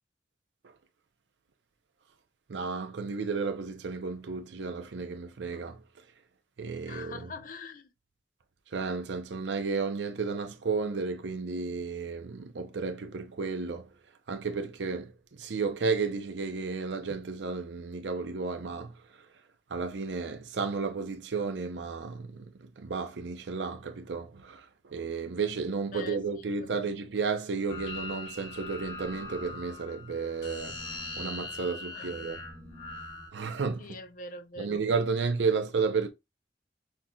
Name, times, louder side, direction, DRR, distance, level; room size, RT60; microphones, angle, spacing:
voice 1, 2.5-5.8 6.6-7.3 8.7-13.9 14.3-15.1 15.4-18.9 19.7-24.6 24.9-30.8 31.2-32.4 33.3-33.9 34.6-36.1, right 4 dB, 75° right, 0.6 m, -32 dB
voice 2, 6.9-7.9 25.9-26.7 31.9-32.2 33.8-34.8, left 3 dB, 45° left, 0.5 m, -43 dB
sound 1, 27.7-33.3, left 3 dB, 70° left, 1.6 m, -41 dB
5.7 x 2.4 x 2.2 m
head